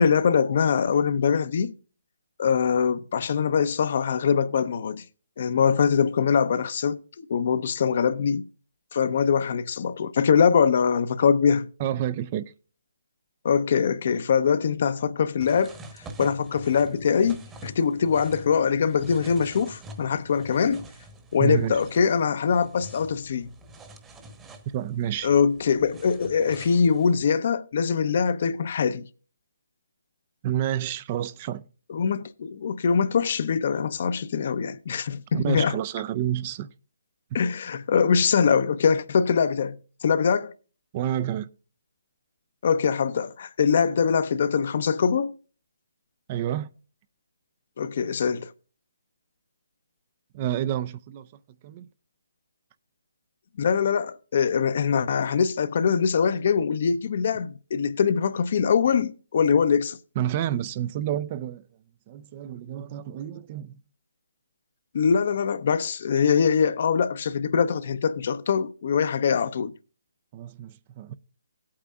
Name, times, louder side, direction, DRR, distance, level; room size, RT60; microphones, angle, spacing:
voice 1, 0.0-1.7 2.4-5.0 5.4-8.4 8.9-11.7 13.4-15.8 16.2-20.8 21.3-23.5 25.2-29.1 31.9-35.7 37.3-40.5 42.6-45.3 47.8-48.5 53.6-60.0 64.9-69.7, left 6 dB, 50° left, 0.7 m, -23 dB
voice 2, 11.8-12.5 21.4-21.8 24.7-25.3 30.4-31.7 35.3-36.7 37.3-37.4 40.9-41.5 46.3-46.7 50.3-51.3 51.6-51.9 60.2-61.7 62.1-63.8 70.3-71.2, right 11 dB, 30° right, 0.5 m, -29 dB
sound 1, 15.4-27.2, right 1 dB, 15° right, 1.1 m, -46 dB
17.5 x 8.6 x 2.4 m
hypercardioid pair, 150°, 0 cm